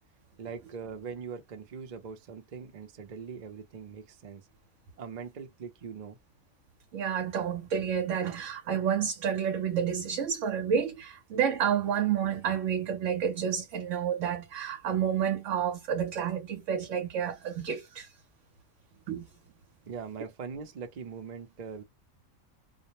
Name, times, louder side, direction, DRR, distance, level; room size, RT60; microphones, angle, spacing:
voice 1, 0.4-4.5 5.0-6.2 19.9-21.8, right 6 dB, 45° right, 0.6 m, -41 dB
voice 2, 6.9-18.1 19.1-19.3, right 8 dB, 70° right, 1.0 m, -30 dB
2.4 x 2.1 x 2.8 m
omnidirectional pair, 1.4 m